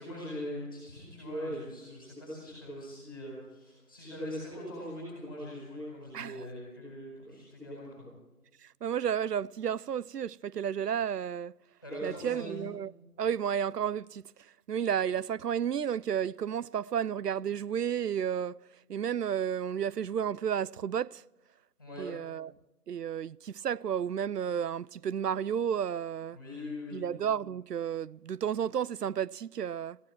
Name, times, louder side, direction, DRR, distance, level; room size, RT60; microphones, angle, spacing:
voice 1, 0.0-8.1 11.8-12.6 21.8-22.1 26.3-27.0, equal, 15° left, 4.6 m, -41 dB
voice 2, 6.1-6.5 8.6-11.5 12.0-12.9 13.2-18.6 18.9-21.2 22.0-22.5 22.9-26.4 26.9-30.0, right 8 dB, 90° right, 0.6 m, -32 dB
18.0 x 15.0 x 4.5 m
figure-of-eight pair, 175°, 46 cm